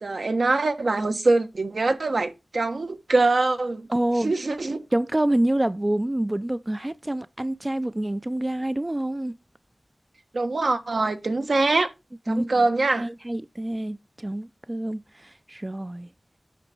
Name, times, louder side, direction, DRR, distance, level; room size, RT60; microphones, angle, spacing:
voice 1, 0.0-3.9 4.2-4.8 10.3-11.9 12.3-13.1, right 3 dB, 75° right, 1.3 m, -23 dB
voice 2, 3.9-4.3 4.9-9.4 12.3-12.5 13.0-16.1, right 1 dB, 25° right, 0.4 m, -27 dB
9.1 x 6.3 x 4.3 m
wide cardioid pair, 60°, 0 cm